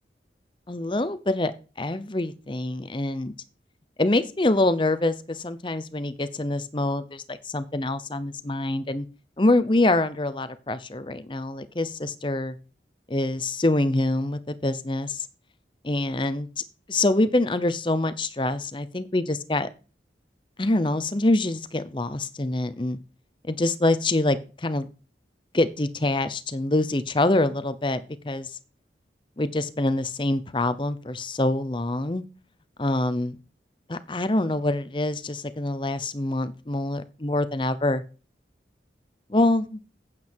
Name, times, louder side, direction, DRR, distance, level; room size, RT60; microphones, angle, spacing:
voice 1, 0.7-1.5 1.8-3.3 4.0-9.1 9.4-12.5 13.1-15.3 15.8-16.5 16.9-19.7 20.6-23.0 23.4-24.9 25.5-28.5 29.4-32.2 32.8-33.4 33.9-38.0 39.3-39.8, left 2 dB, 25° left, 0.7 m, -25 dB
9.2 x 7.7 x 4.5 m
head